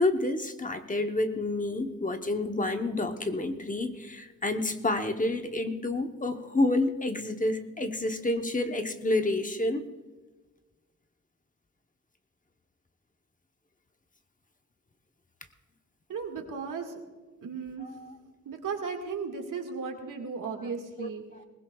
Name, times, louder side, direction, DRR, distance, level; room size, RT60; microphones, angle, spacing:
voice 1, 0.0-9.8 17.8-18.1 21.0-21.4, left 2 dB, 25° left, 6 dB, 0.9 m, -29 dB
voice 2, 16.1-17.0 17.4-17.9 18.5-21.2, right 5 dB, 85° right, 3 dB, 1.9 m, -35 dB
20.5 x 20.0 x 2.3 m, 1.3 s
wide cardioid pair, 120°, 31 cm